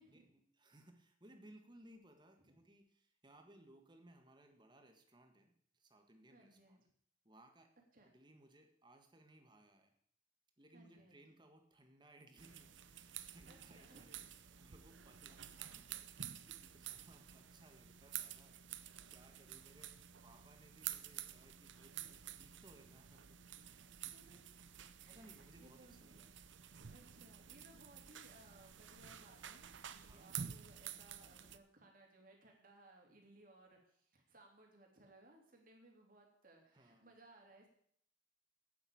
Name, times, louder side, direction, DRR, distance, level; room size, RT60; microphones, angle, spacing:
voice 1, 0.1-6.8 7.2-7.7 8.0-9.9 10.6-23.4 25.1-26.3 30.1-30.4 36.7-37.1, right 1 dB, 25° right, 5 dB, 1.6 m, -64 dB
voice 2, 6.3-6.9 7.9-8.1 10.7-11.2 13.5-14.2 24.0-24.4 25.0-26.2 26.9-29.6 29.9-37.7, right 1 dB, 45° right, 1 dB, 3.0 m, -64 dB
sound 1, 12.4-31.6, right 10 dB, 75° right, 0.7 m, -51 dB
9.0 x 8.0 x 8.7 m, 0.64 s
head